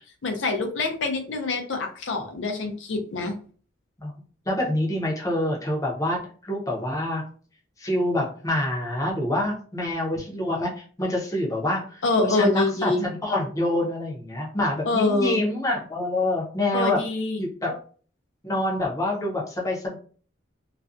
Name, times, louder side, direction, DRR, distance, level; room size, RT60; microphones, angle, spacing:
voice 1, 0.2-3.4 12.0-13.1 14.9-15.4 16.7-17.4, left 3 dB, 70° left, 3 dB, 0.5 m, -25 dB
voice 2, 4.5-7.2 7.8-17.0 17.4-17.7 18.4-20.0, left 1 dB, 15° left, -2 dB, 0.6 m, -26 dB
2.4 x 2.2 x 2.4 m, 0.43 s
head